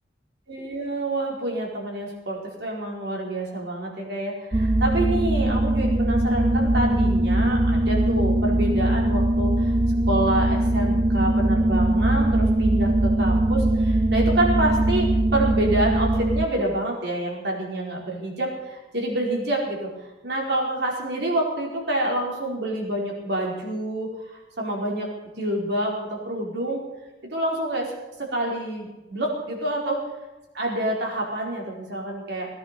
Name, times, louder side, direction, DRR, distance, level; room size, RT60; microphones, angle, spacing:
voice 1, 0.5-19.9 20.2-25.1 25.4-26.8 27.3-27.9 28.2-30.0 30.5-32.5, right 1 dB, 65° right, -1 dB, 4.6 m, -27 dB
sound 1, 4.5-16.5, right 1 dB, 25° right, 0.5 m, -21 dB
18.5 x 10.5 x 7.0 m, 1.1 s
head